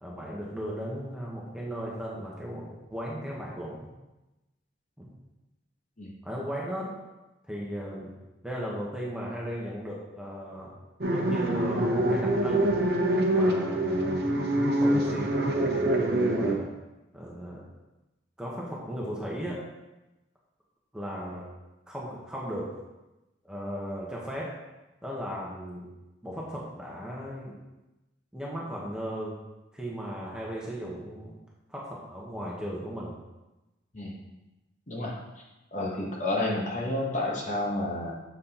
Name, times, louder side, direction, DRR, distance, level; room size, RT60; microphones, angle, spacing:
voice 1, 0.0-3.9 5.0-5.1 6.2-6.9 7.5-8.1 8.4-10.7 11.1-12.7 13.3-14.3 14.7-16.7 17.1-17.6 18.4-19.6 20.9-21.4 21.9-22.7 23.4-24.5 25.0-25.9 26.2-27.6 28.3-29.4 29.7-31.3 31.7-33.1, equal, 5° right, -5 dB, 1.1 m, -36 dB
sound 1, 11.0-16.6, right 1 dB, 50° right, 0.8 m, -25 dB
voice 2, 35.7-38.1, left 2 dB, 40° left, -2 dB, 1.0 m, -30 dB
7.1 x 6.0 x 2.9 m, 1.0 s
head